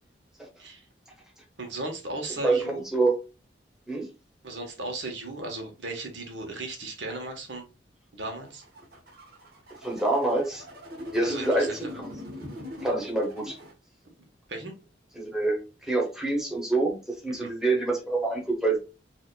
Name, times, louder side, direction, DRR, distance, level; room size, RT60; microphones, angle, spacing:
voice 1, 1.6-2.8 4.4-7.7 8.1-8.6 11.2-11.8 14.5-14.7 17.3-17.5, right 2 dB, 85° right, 1.2 m, -36 dB
voice 2, 2.4-3.2 3.9-4.1 9.8-10.6 11.1-12.1 12.8-13.6 15.1-18.8, right 2 dB, 5° right, 1.3 m, -26 dB
sound 1, 8.5-13.7, left 1 dB, 60° right, 1.2 m, -41 dB
5.3 x 2.8 x 2.3 m
head